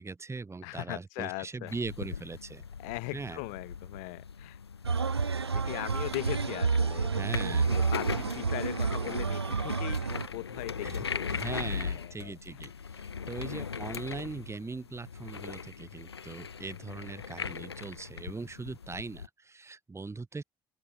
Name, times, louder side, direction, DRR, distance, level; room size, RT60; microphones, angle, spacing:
voice 1, 0.0-2.7 3.1-3.4 7.1-7.7 10.8-12.7 13.3-20.4, right 3 dB, 20° right, 2.2 m, -40 dB
voice 2, 0.6-1.7 2.8-4.6 5.2-7.3 7.7-12.7 13.2-13.5, left 36 dB, 65° left, 3.8 m, -40 dB
sound 1, 1.7-19.3, left 6 dB, 85° left, 1.5 m, -40 dB
sound 2, 4.8-10.3, right 5 dB, 90° right, 0.5 m, -30 dB
open air
figure-of-eight pair, 50°, 13 cm